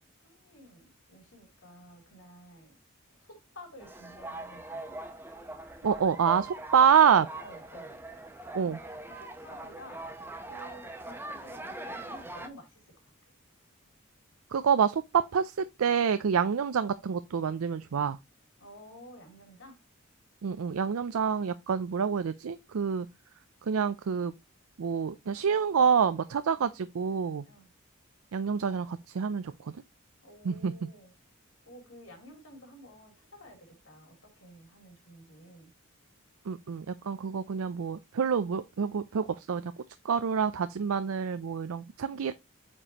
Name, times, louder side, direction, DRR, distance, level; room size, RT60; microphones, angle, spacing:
voice 1, 0.2-2.8 3.2-4.9 7.4-8.0 8.6-10.1 10.4-12.7 18.6-19.8 26.5-26.7 27.4-27.7 30.2-31.1 31.7-35.7 42.1-42.2, equal, 65° left, 3.3 m, -52 dB
sound 1, 3.8-12.5, right 2 dB, 10° right, 0.9 m, -42 dB
voice 2, 5.8-7.3 8.5-8.8 14.5-18.2 20.4-23.1 23.7-24.3 24.8-27.5 28.3-29.8 30.4-30.9 36.5-39.7 40.0-42.3, right 7 dB, 85° right, 0.4 m, -27 dB
8.6 x 5.1 x 2.9 m
head